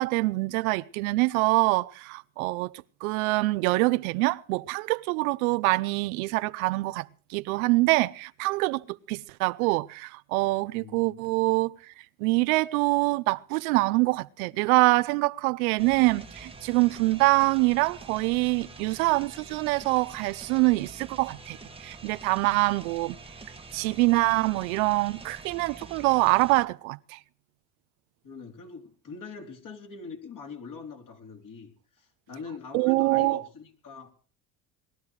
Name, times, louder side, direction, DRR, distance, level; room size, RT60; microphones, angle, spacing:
voice 1, 0.0-2.7 3.0-11.9 12.2-23.2 23.7-27.2 32.7-33.4, right 23 dB, 85° right, 0.8 m, -25 dB
voice 2, 10.7-11.3 28.2-31.7 32.0-34.1, left 4 dB, 45° left, 4.0 m, -43 dB
sound 1, 15.8-26.7, right 3 dB, 15° right, 1.4 m, -46 dB
20.5 x 13.0 x 4.8 m
supercardioid pair, 90°, 42 cm